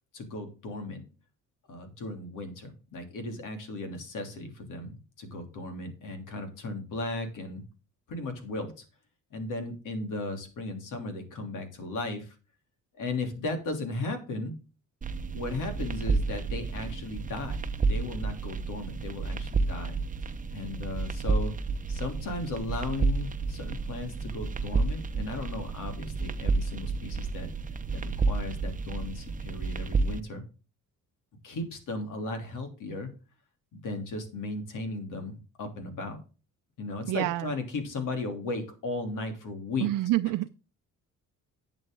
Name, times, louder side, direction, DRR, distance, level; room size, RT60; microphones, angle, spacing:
voice 1, 0.1-1.0 1.7-7.6 8.1-8.8 9.3-12.3 13.0-14.6 15.3-17.6 17.9-20.0 20.2-21.5 21.9-27.5 27.9-30.4 31.4-33.1 33.7-36.2 36.8-39.9, left 2 dB, 75° left, 3.2 m, -36 dB
sound 1, 15.0-30.2, right 4 dB, 25° right, 0.8 m, -31 dB
voice 2, 37.1-37.5 39.8-40.5, right 16 dB, 85° right, 0.6 m, -27 dB
11.0 x 8.3 x 3.8 m
cardioid pair, 110°, 32 cm